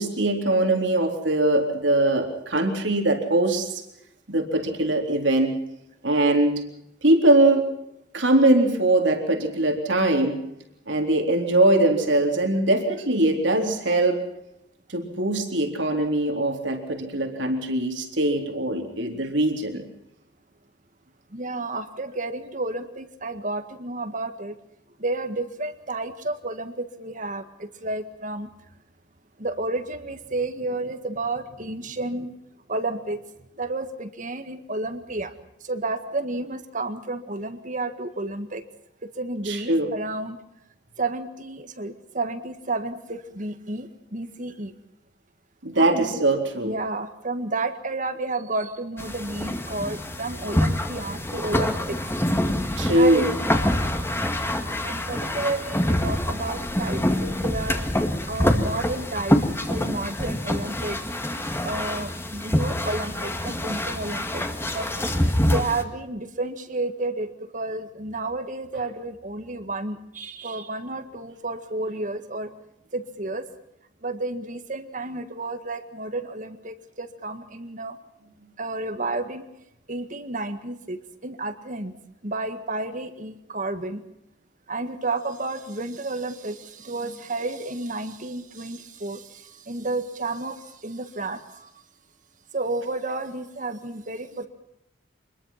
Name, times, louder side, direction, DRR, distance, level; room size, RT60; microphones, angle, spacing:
voice 1, 0.0-3.8 4.3-5.6 6.0-6.6 7.0-7.7 8.1-10.4 10.9-14.2 14.9-19.8 39.5-39.9 45.6-46.8 52.8-53.3, right 1 dB, 75° right, 4 dB, 3.8 m, -21 dB
voice 2, 21.3-24.6 25.0-28.5 29.4-32.3 32.7-33.2 33.5-35.3 35.6-38.6 39.0-40.4 41.0-44.7 45.8-46.2 46.6-52.0 52.9-53.5 54.8-57.8 58.3-61.0 61.6-64.9 65.5-72.5 72.9-73.5 74.0-78.0 78.6-79.4 79.9-81.9 82.2-84.0 84.7-91.7 92.5-94.5, right 2 dB, 45° right, 9 dB, 1.8 m, -31 dB
sound 1, 49.0-65.8, left 1 dB, 15° left, 2.0 m, -26 dB
26.0 x 21.0 x 5.9 m, 0.81 s
head